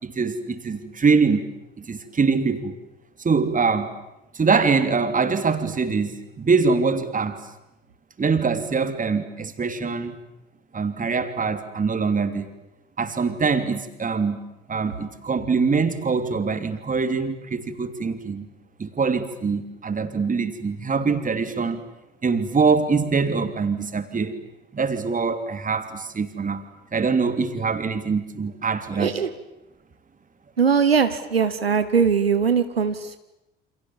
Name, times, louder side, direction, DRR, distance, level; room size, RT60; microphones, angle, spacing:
voice 1, 0.0-1.5 1.8-2.7 3.2-3.9 4.3-7.4 8.2-10.2 10.7-12.5 13.0-14.4 14.7-18.5 18.8-21.8 22.2-24.4 24.7-26.6 26.9-29.1, right 4 dB, 25° right, 9 dB, 3.1 m, -23 dB
voice 2, 28.9-29.3 30.6-33.2, right 6 dB, 85° right, 10 dB, 1.0 m, -21 dB
29.0 x 27.5 x 7.4 m, 0.92 s
figure-of-eight pair, 55°, 29 cm